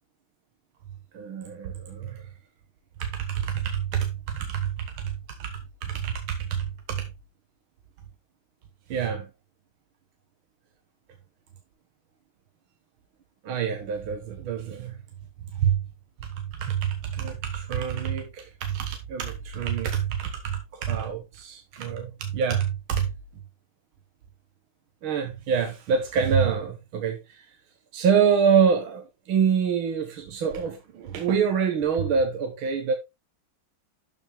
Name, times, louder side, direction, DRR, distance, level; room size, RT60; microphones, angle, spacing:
voice 1, 1.1-2.3 3.0-5.1 5.4-7.1 8.9-9.3 13.4-15.0 15.6-15.8 16.4-23.1 25.0-27.5 27.9-32.9, right 7 dB, 75° right, 2.0 m, -26 dB
12.5 x 5.9 x 3.5 m
omnidirectional pair, 2.3 m